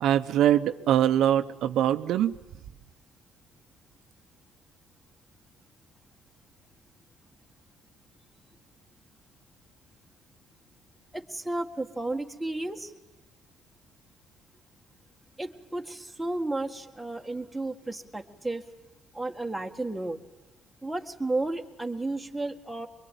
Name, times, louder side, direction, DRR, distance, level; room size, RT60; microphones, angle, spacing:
voice 1, 0.0-2.3, right 11 dB, 75° right, 9 dB, 0.9 m, -23 dB
voice 2, 11.1-12.9 15.4-18.6 19.1-20.2 20.8-22.9, right 2 dB, 5° right, 3 dB, 1.8 m, -33 dB
24.0 x 23.5 x 9.3 m, 0.98 s
cardioid pair, 125°, 0 cm